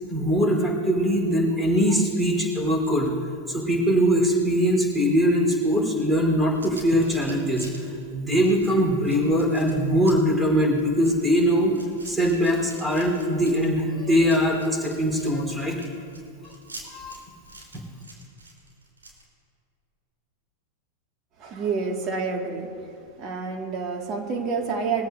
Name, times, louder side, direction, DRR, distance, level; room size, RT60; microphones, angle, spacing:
voice 1, 0.1-3.1 3.5-7.7 8.1-11.7 12.1-15.8 16.4-16.5 16.8-17.2, equal, 10° right, 0 dB, 4.1 m, -22 dB
sound 1, 6.5-19.2, right 2 dB, 75° right, 4.0 m, -46 dB
voice 2, 21.4-22.7 23.2-25.1, right 4 dB, 35° right, 3 dB, 2.1 m, -28 dB
23.0 x 15.5 x 2.7 m, 2.4 s
figure-of-eight pair, 90°, 0 cm